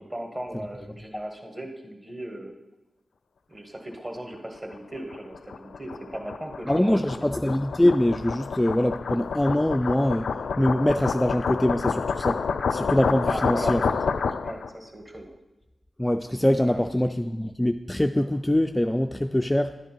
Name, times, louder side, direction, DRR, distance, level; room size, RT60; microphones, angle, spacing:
voice 1, 0.1-2.5 3.5-7.0 13.3-13.8 14.4-15.3 16.6-16.8, right 1 dB, 25° right, 3 dB, 1.6 m, -37 dB
sound 1, 4.7-14.7, left 5 dB, 85° left, 0.4 m, -29 dB
voice 2, 6.7-12.4 12.7-13.9 16.0-19.8, left 1 dB, 10° left, 7 dB, 0.3 m, -23 dB
10.5 x 9.1 x 4.5 m, 1.0 s
wide cardioid pair, 90°, 0 cm